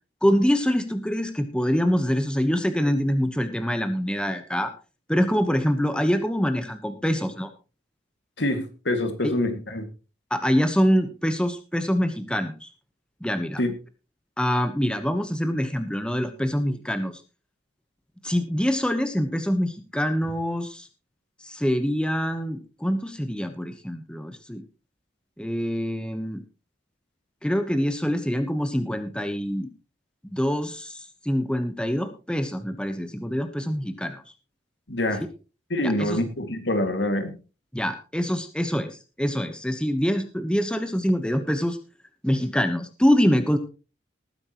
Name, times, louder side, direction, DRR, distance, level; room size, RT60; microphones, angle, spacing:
voice 1, 0.2-4.7 5.1-7.5 9.2-9.3 10.3-12.7 13.2-13.6 14.4-17.2 18.2-20.9 21.4-24.6 25.4-26.4 27.4-29.7 30.2-34.2 35.8-36.2 37.7-38.9 39.2-41.8 42.2-43.6, equal, 5° left, 8 dB, 1.1 m, -25 dB
voice 2, 8.4-9.9 13.6-13.7 34.9-35.2 35.7-37.3, left 1 dB, 75° left, 7 dB, 2.3 m, -25 dB
19.5 x 9.7 x 3.1 m, 0.33 s
head